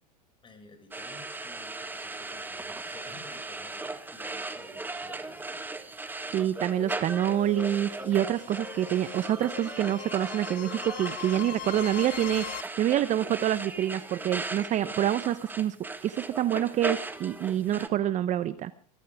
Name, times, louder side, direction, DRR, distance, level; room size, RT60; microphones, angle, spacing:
voice 1, 0.4-5.7, left 3 dB, 25° left, 6 dB, 6.5 m, -52 dB
sound 1, 0.9-17.9, right 3 dB, 10° right, 1.6 m, -38 dB
voice 2, 6.3-15.8 16.0-18.7, right 11 dB, 40° right, 14 dB, 1.0 m, -27 dB
sound 2, 6.6-12.6, left 15 dB, 45° left, 1.1 m, -41 dB
25.5 x 14.5 x 3.6 m, 0.40 s
hypercardioid pair, 105°, 20 cm